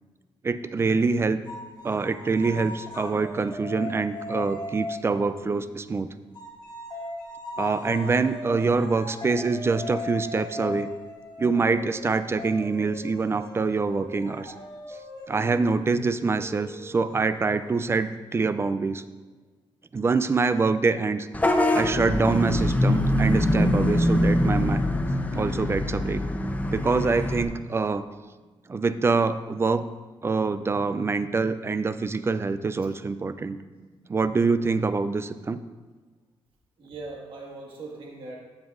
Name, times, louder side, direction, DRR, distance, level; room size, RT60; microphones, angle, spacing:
voice 1, 0.4-1.4 1.8-6.1 7.6-10.9 11.4-14.5 15.3-19.0 19.9-21.3 21.7-24.8 25.3-26.2 26.7-28.0 28.7-29.9 30.2-33.6 34.1-35.6, right 4 dB, 25° right, 12 dB, 0.4 m, -25 dB
sound 1, 1.5-5.4 6.3-17.7, left 2 dB, 50° left, 2.0 m, -38 dB
Vehicle horn car horn honking / Bus, 21.3-27.4, left 1 dB, 15° left, 0.7 m, -23 dB
voice 2, 33.7-34.1 36.8-38.4, right 3 dB, 65° right, -2 dB, 1.7 m, -41 dB
13.0 x 7.3 x 2.5 m, 1.3 s
cardioid pair, 110°, 10 cm